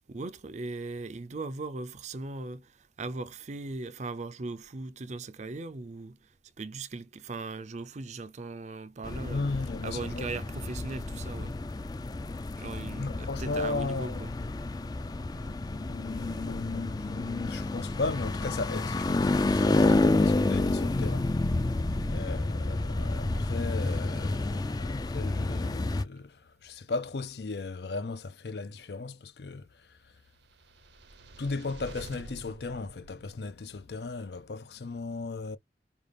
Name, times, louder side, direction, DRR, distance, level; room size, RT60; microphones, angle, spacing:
voice 1, 0.1-9.4 9.8-11.6 12.6-14.3 15.3-15.4, right 3 dB, 40° right, 0.5 m, -39 dB
sound 1, 9.0-26.0, left 2 dB, 20° left, 0.4 m, -29 dB
voice 2, 9.3-10.3 12.9-14.3 14.8-21.4 22.1-30.2 31.3-35.6, left 3 dB, 70° left, 0.6 m, -36 dB
sound 2, 30.4-33.9, right 2 dB, 80° right, 0.9 m, -48 dB
5.2 x 2.4 x 3.3 m
head